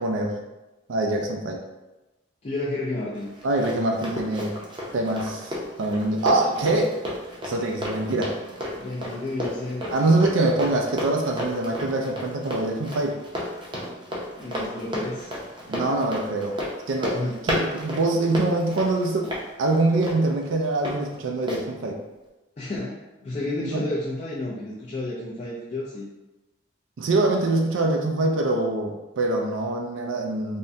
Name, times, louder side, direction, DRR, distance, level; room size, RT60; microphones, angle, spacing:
voice 1, 0.0-0.4 0.9-1.6 3.4-4.6 4.9-7.0 7.4-8.3 9.9-13.2 15.7-16.6 16.9-17.2 17.4-19.3 19.6-22.0 23.6-23.9 27.0-30.6, right 2 dB, 90° right, 2 dB, 0.4 m, -24 dB
voice 2, 2.4-3.3 8.8-10.2 14.3-15.3 17.1-17.4 22.6-26.1, left 2 dB, 35° left, -7 dB, 0.4 m, -31 dB
Run, 3.1-21.0 21.5-21.6, equal, 25° right, 0.5 m, -33 dB
3.5 x 2.1 x 2.6 m, 1.1 s
head